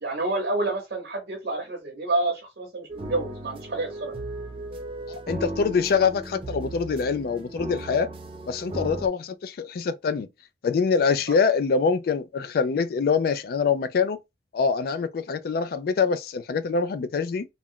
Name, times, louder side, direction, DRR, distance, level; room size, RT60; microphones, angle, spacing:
voice 1, 0.0-4.1, right 2 dB, 65° right, 0.8 m, -28 dB
sound 1, 2.9-9.1, right 1 dB, 30° right, 0.4 m, -36 dB
voice 2, 5.3-8.1 8.5-10.3 10.6-14.2 14.5-17.5, left 5 dB, 55° left, 0.3 m, -24 dB
2.3 x 2.1 x 3.6 m
head